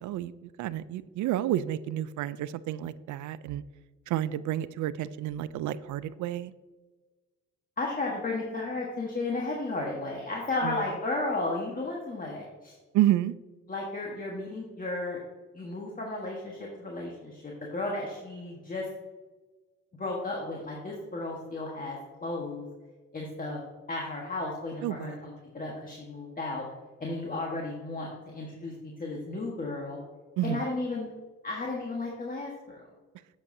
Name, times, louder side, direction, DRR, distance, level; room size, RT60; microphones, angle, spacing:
voice 1, 0.0-3.6 4.1-6.5 10.6-10.8 12.9-13.3 24.8-25.2 30.4-30.6, right 13 dB, 75° right, 17 dB, 0.4 m, -30 dB
voice 2, 7.8-12.8 13.7-15.2 15.5-18.9 20.0-22.6 23.1-23.6 23.9-26.6 27.0-30.0 30.4-31.1 31.4-32.8, left 2 dB, 30° left, -2 dB, 1.3 m, -34 dB
8.2 x 7.3 x 2.7 m, 1.3 s
cardioid pair, 90°, 30 cm